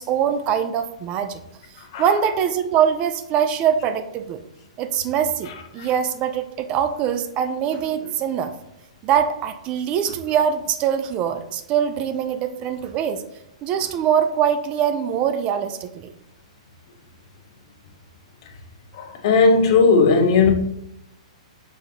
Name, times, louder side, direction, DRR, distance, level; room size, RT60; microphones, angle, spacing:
voice 1, 0.0-1.4 2.0-4.4 4.8-8.5 9.0-13.2 13.6-16.1, right 8 dB, 30° right, 9 dB, 0.4 m, -23 dB
voice 2, 19.2-20.5, left 4 dB, 50° left, 5 dB, 0.7 m, -15 dB
5.2 x 3.5 x 2.8 m, 0.79 s
hypercardioid pair, 135°, 4 cm